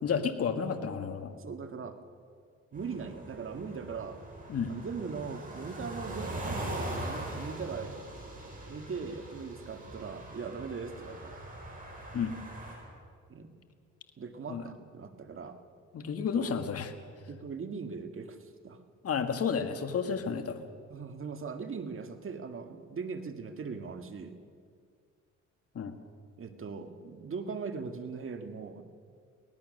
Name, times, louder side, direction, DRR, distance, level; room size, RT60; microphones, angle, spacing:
voice 1, 0.0-1.3 4.5-4.8 12.1-12.3 14.5-14.6 15.9-16.9 19.0-20.6 25.8-26.0, left 6 dB, 50° left, 7 dB, 1.8 m, -31 dB
voice 2, 1.4-2.0 2.7-4.2 4.7-8.0 8.7-11.4 13.3-13.6 14.2-15.6 16.1-16.5 17.3-18.8 20.9-24.4 26.4-28.8, right 5 dB, 45° right, 7 dB, 1.9 m, -40 dB
sound 1, 2.7-12.8, right 1 dB, 25° right, 7.1 m, -41 dB
24.0 x 18.0 x 6.6 m, 2.2 s
cardioid pair, 90°, 30 cm